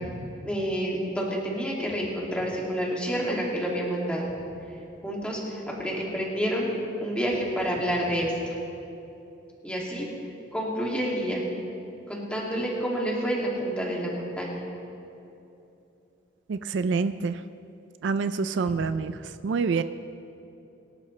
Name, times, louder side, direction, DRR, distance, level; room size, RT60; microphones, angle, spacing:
voice 1, 0.4-4.3 5.0-6.7 7.0-8.6 9.6-10.1 10.5-11.4 12.1-14.6 18.6-18.7, equal, 5° left, -4 dB, 2.3 m, -29 dB
voice 2, 16.5-17.4 18.0-19.1 19.4-19.8, right 4 dB, 65° right, 12 dB, 0.4 m, -26 dB
23.5 x 11.5 x 3.2 m, 2.8 s
head